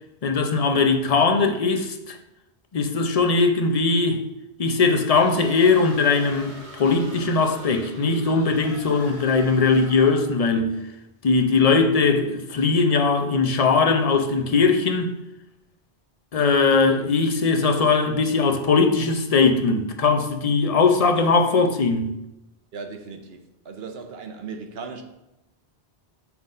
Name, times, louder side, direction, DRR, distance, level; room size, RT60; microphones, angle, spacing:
voice 1, 0.2-2.2 2.7-4.2 4.6-10.8 11.2-15.1 16.3-22.1, left 4 dB, 40° left, 0.6 m, -20 dB
sound 1, 5.1-10.4, right 1 dB, 35° right, 1.1 m, -42 dB
voice 2, 22.7-25.0, right 5 dB, 70° right, 0.9 m, -37 dB
5.9 x 3.8 x 5.3 m
omnidirectional pair, 1.1 m